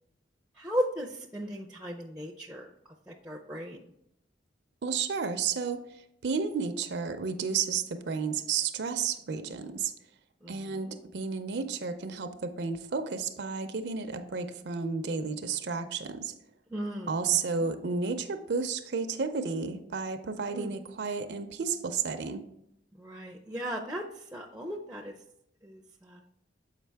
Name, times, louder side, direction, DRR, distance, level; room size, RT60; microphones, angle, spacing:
voice 1, 0.6-2.7 3.1-3.9 10.4-10.9 16.7-17.7 20.5-20.7 23.0-24.1 24.3-25.1 25.6-26.2, equal, 5° right, 1 dB, 0.4 m, -36 dB
voice 2, 4.8-5.8 6.2-9.9 10.5-16.3 17.1-22.4, right 5 dB, 70° right, 8 dB, 0.5 m, -32 dB
7.3 x 4.9 x 3.4 m, 0.78 s
head